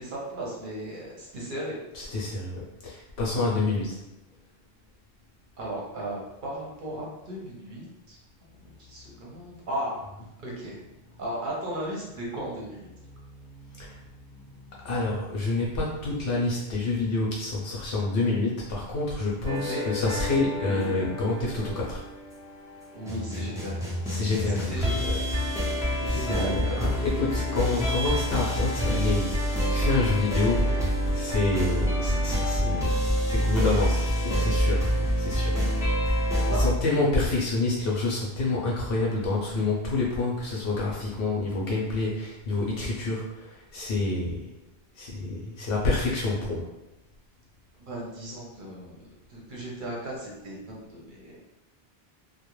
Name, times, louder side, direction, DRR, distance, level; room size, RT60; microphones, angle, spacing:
voice 1, 0.0-1.7 5.6-8.2 8.8-10.1 10.4-10.8 11.2-12.9 19.6-20.0 20.6-21.0 22.9-23.9 24.5-25.2 25.8-27.5 36.0-36.1 36.5-36.7 47.8-49.0 49.3-51.4, right 1 dB, 55° right, -4 dB, 0.8 m, -36 dB
voice 2, 1.9-4.0 13.0-22.0 24.1-24.8 26.1-44.5 45.0-46.7, left 3 dB, 70° left, -4 dB, 0.7 m, -28 dB
sound 1, 19.4-36.7, equal, 5° right, 0.4 m, -27 dB
2.3 x 2.1 x 3.0 m, 0.94 s
omnidirectional pair, 1.0 m